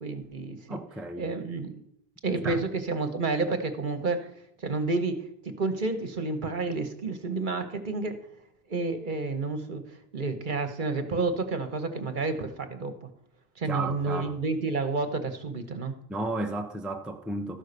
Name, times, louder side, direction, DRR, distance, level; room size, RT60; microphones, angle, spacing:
voice 1, 0.0-0.8 1.2-1.7 2.2-4.2 4.6-5.2 5.4-8.2 8.7-9.8 10.1-13.1 13.6-15.9, right 3 dB, 55° right, 1.1 m, -30 dB
voice 2, 0.7-1.3 2.4-2.6 13.7-14.3 16.1-17.6, right 2 dB, ahead, 0.7 m, -33 dB
13.0 x 5.6 x 6.6 m
omnidirectional pair, 1.0 m